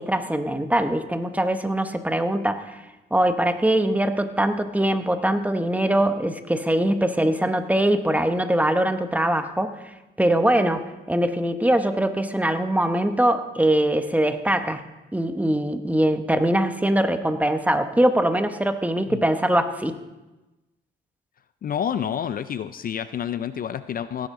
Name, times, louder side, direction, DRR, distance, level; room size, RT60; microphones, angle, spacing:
voice 1, 0.0-2.8 3.1-9.8 10.2-14.8 15.1-19.9, right 1 dB, 5° right, 8 dB, 0.9 m, -22 dB
voice 2, 21.6-24.3, left 8 dB, 45° left, 13 dB, 0.4 m, -29 dB
17.0 x 10.0 x 3.7 m, 1.1 s
cardioid pair, 90°, 20 cm